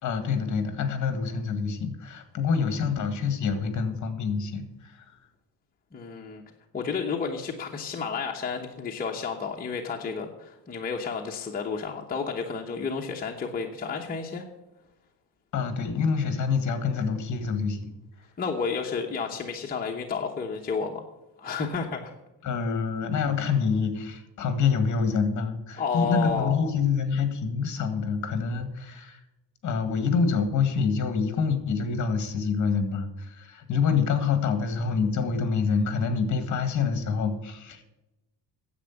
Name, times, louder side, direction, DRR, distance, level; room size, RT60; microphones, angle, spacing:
voice 1, 0.0-5.0 15.5-17.9 22.4-29.2 29.6-37.9, left 5 dB, 45° left, 9 dB, 1.8 m, -26 dB
voice 2, 5.9-6.4 6.7-14.5 18.4-21.0 21.4-22.1 25.8-26.7, left 5 dB, 20° left, 0 dB, 0.9 m, -31 dB
10.0 x 7.9 x 7.2 m, 0.97 s
cardioid pair, 160°, 42 cm